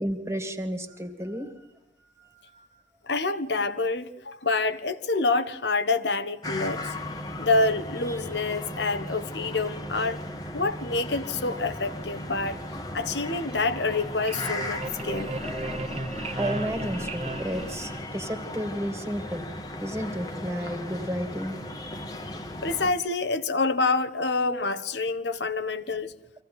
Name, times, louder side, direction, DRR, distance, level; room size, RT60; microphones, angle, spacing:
voice 1, 0.0-1.7 2.0-2.8 16.4-19.5 19.8-21.6 25.3-25.7, equal, 15° right, 2.4 m, -33 dB
voice 2, 3.1-6.9 7.4-10.2 10.5-12.6 12.9-15.4 22.6-26.1, left 3 dB, 80° left, 1.4 m, -27 dB
sound 1, 6.4-22.9, left 1 dB, 20° left, 1.7 m, -36 dB
sound 2, 13.7-18.4, right 2 dB, 35° right, 1.5 m, -35 dB
25.5 x 16.5 x 9.5 m
head